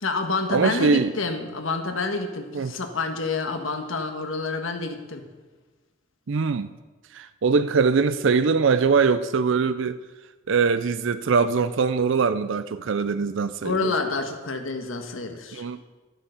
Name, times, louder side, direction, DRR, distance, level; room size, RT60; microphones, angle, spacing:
voice 1, 0.0-5.2 13.6-15.6, left 3 dB, 75° left, 6 dB, 1.5 m, -28 dB
voice 2, 0.5-1.1 2.5-2.7 6.3-6.7 7.1-10.0 10.5-13.9 15.5-15.8, right 5 dB, 65° right, 12 dB, 0.5 m, -22 dB
12.5 x 8.9 x 6.6 m, 1.3 s
head